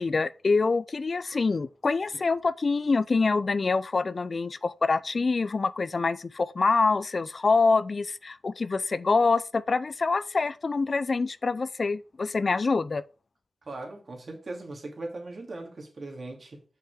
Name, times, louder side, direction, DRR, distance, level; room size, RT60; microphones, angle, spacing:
voice 1, 0.0-13.0, left 4 dB, 50° left, 0.4 m, -25 dB
voice 2, 13.6-16.6, right 2 dB, 50° right, 2.6 m, -39 dB
6.0 x 5.8 x 4.8 m
wide cardioid pair, 80°, 0 cm